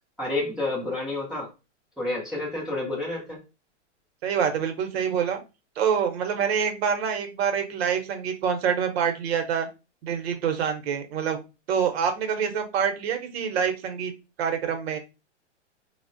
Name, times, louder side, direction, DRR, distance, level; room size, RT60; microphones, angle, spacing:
voice 1, 0.2-1.5 2.0-3.4, left 2 dB, ahead, -7 dB, 0.6 m, -29 dB
voice 2, 4.2-5.4 5.8-9.7 10.0-11.4 11.7-14.1 14.4-15.0, right 7 dB, 55° right, 5 dB, 0.8 m, -26 dB
3.2 x 2.1 x 2.5 m, 0.27 s
hypercardioid pair, 145°, 36 cm